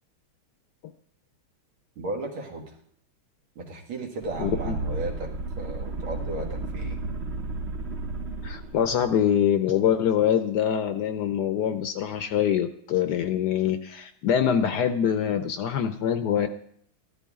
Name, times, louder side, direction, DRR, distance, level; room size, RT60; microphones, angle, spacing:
voice 1, 2.0-2.7 3.6-5.3 5.6-7.0, right 2 dB, 85° right, 1 dB, 2.7 m, -35 dB
sound 1, 4.2-9.1, right 2 dB, 60° right, 0.7 m, -33 dB
voice 2, 4.4-4.8 8.4-16.5, left 9 dB, 70° left, 9 dB, 1.0 m, -24 dB
14.0 x 12.5 x 3.6 m, 0.65 s
omnidirectional pair, 2.2 m